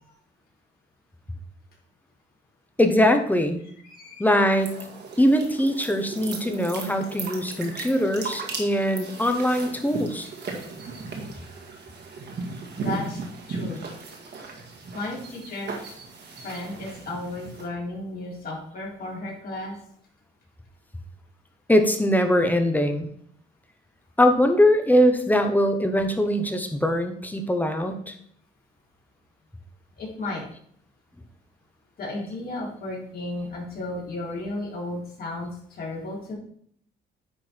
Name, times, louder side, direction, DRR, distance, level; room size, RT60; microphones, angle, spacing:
voice 1, 2.8-3.6 4.2-4.7 5.2-10.3 21.7-23.1 24.2-28.1, equal, 10° left, 6 dB, 1.1 m, -21 dB
voice 2, 3.9-4.4 12.8-13.2 13.5-13.8 14.9-15.7 16.4-19.8 30.0-30.4 32.0-36.4, left 2 dB, 50° left, -4 dB, 3.7 m, -34 dB
sound 1, 4.6-17.7, right 4 dB, 60° right, 1.9 m, -36 dB
9.9 x 3.9 x 4.6 m, 0.63 s
cardioid pair, 90°, 20 cm